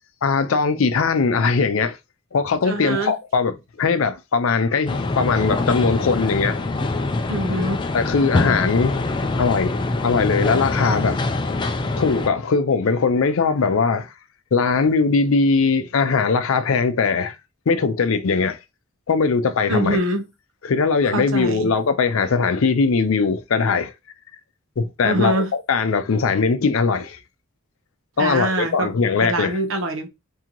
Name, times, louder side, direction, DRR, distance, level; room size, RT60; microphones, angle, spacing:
voice 1, 0.2-2.0 2.3-6.6 7.9-9.0 9.4-11.2 12.0-14.1 14.5-17.4 17.7-18.6 19.1-20.0 20.7-23.9 24.8-27.2 28.2-29.6, left 4 dB, 75° left, 0.5 m, -20 dB
voice 2, 2.6-3.1 7.3-7.8 19.7-20.3 21.0-21.7 25.0-25.5 28.2-28.9 29.2-30.1, right 1 dB, 70° right, 0.8 m, -24 dB
sound 1, 4.9-12.3, left 2 dB, 25° left, 0.3 m, -24 dB
3.7 x 2.7 x 2.9 m
head